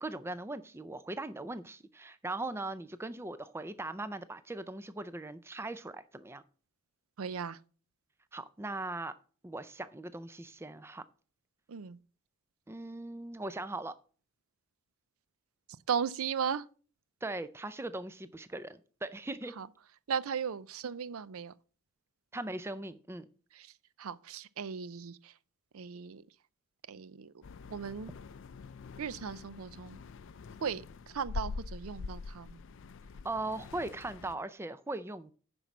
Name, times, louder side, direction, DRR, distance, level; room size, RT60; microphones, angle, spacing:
voice 1, 0.0-6.4 8.3-9.2 9.4-11.0 12.7-13.9 17.2-19.5 22.3-23.3 33.2-35.3, right 2 dB, 10° right, 0.4 m, -39 dB
voice 2, 7.2-7.6 11.7-12.0 15.9-16.7 19.6-19.7 20.1-21.5 23.5-23.7 24.0-25.3 25.7-26.2 26.9-27.3 27.7-28.1 29.0-30.0 30.6-32.6, right 7 dB, 70° right, 0.5 m, -36 dB
sound 1, 27.4-34.4, left 4 dB, 55° left, 0.4 m, -44 dB
10.0 x 5.3 x 6.0 m
head